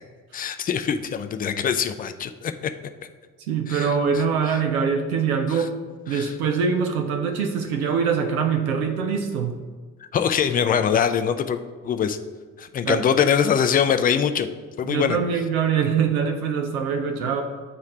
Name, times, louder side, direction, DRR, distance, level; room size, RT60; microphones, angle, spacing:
voice 1, 0.3-2.5 3.7-3.9 5.5-5.7 6.1-6.3 10.1-12.2 12.6-14.5 14.8-15.2, left 8 dB, 20° left, 9 dB, 0.4 m, -23 dB
voice 2, 3.5-5.7 6.1-9.6 12.8-13.1 14.8-17.4, right 6 dB, 75° right, 4 dB, 0.6 m, -23 dB
8.5 x 3.1 x 3.7 m, 1.5 s
figure-of-eight pair, 50°, 43 cm